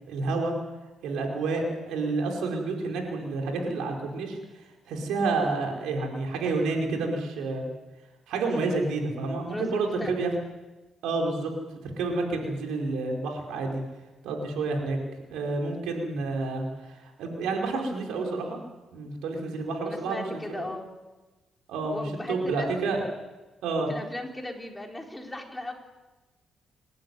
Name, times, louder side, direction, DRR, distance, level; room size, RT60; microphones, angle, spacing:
voice 1, 0.1-0.5 1.0-4.4 4.9-7.7 8.3-10.3 11.0-11.5 12.0-13.8 14.2-15.0 15.3-18.6 18.9-20.6 21.7-23.1 23.6-23.9, right 3 dB, 85° right, 1 dB, 4.8 m, -29 dB
voice 2, 9.5-10.2 19.8-20.9 21.9-22.7 23.9-25.7, left 1 dB, 10° left, 1 dB, 4.0 m, -37 dB
28.5 x 12.0 x 9.6 m, 1.1 s
cardioid pair, 90°, 0 cm